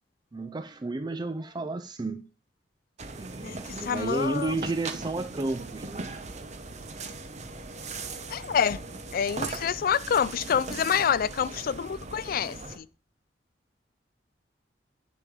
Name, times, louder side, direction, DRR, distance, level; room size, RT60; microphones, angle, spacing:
voice 1, 0.3-2.3 3.2-6.2, right 2 dB, 25° right, 0.4 m, -32 dB
sound 1, 3.0-12.8, right 3 dB, 40° right, 1.0 m, -39 dB
voice 2, 3.8-4.5 8.3-8.8 9.1-12.9, left 7 dB, 50° left, 0.4 m, -27 dB
8.7 x 6.7 x 5.0 m
head